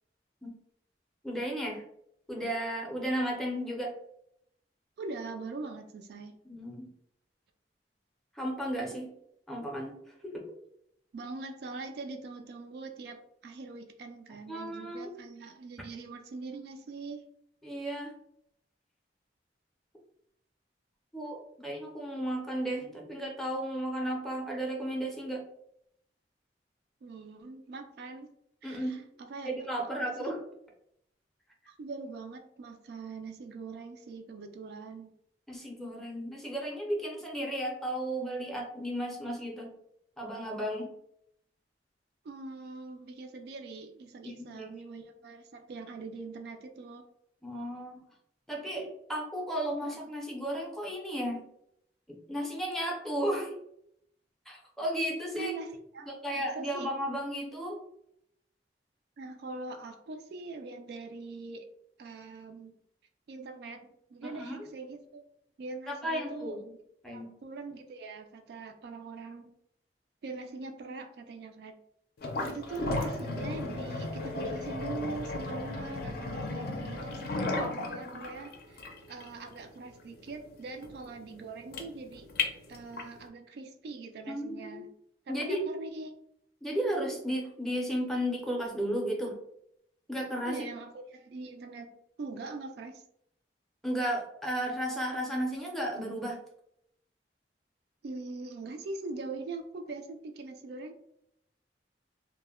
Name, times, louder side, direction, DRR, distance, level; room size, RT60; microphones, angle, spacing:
voice 1, 1.2-1.8 2.3-3.9 6.4-6.9 8.3-9.1 9.5-10.0 10.2-10.5 14.5-15.1 17.6-18.1 21.1-25.4 28.6-29.0 29.4-30.4 35.5-39.7 40.2-40.9 44.2-44.7 47.4-48.0 48.5-51.4 52.1-53.5 54.5-55.5 56.1-57.8 64.2-64.7 65.9-66.6 67.0-67.3 84.3-84.8 85.3-85.7 86.6-89.4 90.1-90.6 93.8-96.4, equal, ahead, -1 dB, 0.5 m, -34 dB
voice 2, 5.0-6.4 11.1-17.3 27.0-28.3 28.6-29.5 29.8-30.3 31.7-35.2 42.2-47.0 55.3-56.9 59.2-61.6 62.0-62.7 63.3-65.3 65.6-66.8 67.1-69.5 70.2-71.7 72.5-82.3 82.7-84.9 85.3-86.1 90.4-93.0 98.0-101.0, right 3 dB, 60° right, 5 dB, 0.3 m, -42 dB
sound 1, 72.2-83.2, left 2 dB, 60° left, 0.5 m, -35 dB
2.1 x 2.1 x 3.4 m, 0.74 s
head